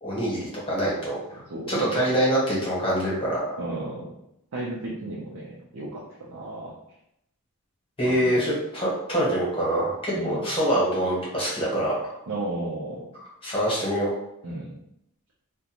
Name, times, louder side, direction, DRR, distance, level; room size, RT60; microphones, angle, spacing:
voice 1, 0.0-1.4 1.7-3.4 8.0-12.2 13.4-14.1, right 1 dB, 25° left, -6 dB, 1.0 m, -25 dB
voice 2, 1.5-2.0 3.6-4.1 4.5-6.7 8.0-8.3 10.1-10.4 12.3-13.1 14.4-14.7, right 2 dB, 80° right, -5 dB, 0.6 m, -34 dB
2.5 x 2.1 x 2.9 m, 0.79 s
head